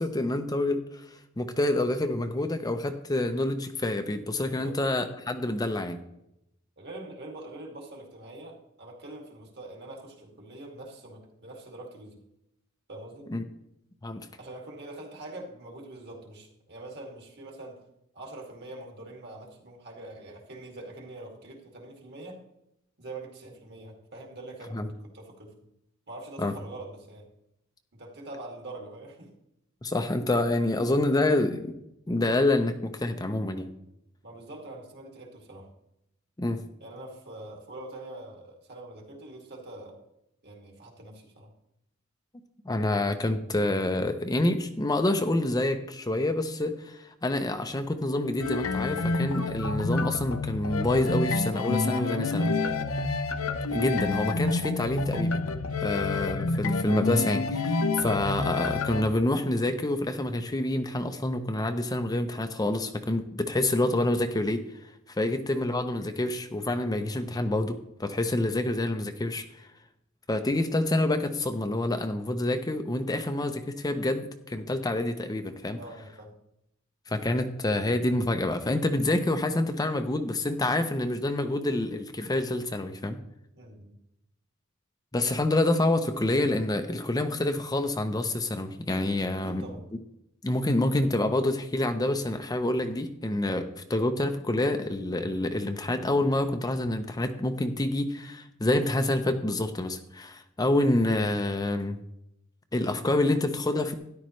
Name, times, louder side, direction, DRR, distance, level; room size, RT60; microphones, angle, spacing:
voice 1, 0.0-6.0 13.3-13.4 14.0-14.2 24.7-24.9 26.4-26.5 29.8-31.8 32.1-33.7 36.4-36.6 42.6-52.5 53.7-55.3 55.8-69.7 70.3-75.8 77.1-83.2 85.1-89.6 90.4-102.0 102.7-103.9, left 1 dB, 20° left, 7 dB, 0.6 m, -27 dB
voice 2, 4.4-4.8 6.8-12.2 12.9-13.3 14.4-17.8 18.1-22.4 23.0-25.7 26.1-27.3 27.9-29.3 34.2-35.7 36.8-40.0 40.4-41.5 52.0-52.8 75.7-76.3 83.6-84.0 89.3-89.8, right 2 dB, 55° right, 0 dB, 2.3 m, -44 dB
sound 1, 48.4-59.0, left 3 dB, 80° left, 0.8 m, -28 dB
13.0 x 10.5 x 3.1 m, 0.83 s
head